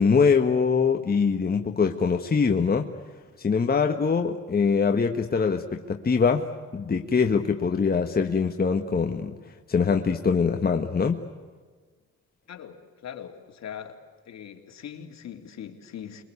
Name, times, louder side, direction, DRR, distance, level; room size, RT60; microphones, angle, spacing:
voice 1, 0.0-2.9 3.4-6.4 6.7-9.3 9.7-11.2, left 5 dB, 30° left, 4 dB, 1.6 m, -23 dB
voice 2, 12.5-14.0 14.3-16.2, left 8 dB, 60° left, 3 dB, 3.5 m, -41 dB
28.0 x 23.0 x 8.4 m, 1.5 s
cardioid pair, 90°, 30 cm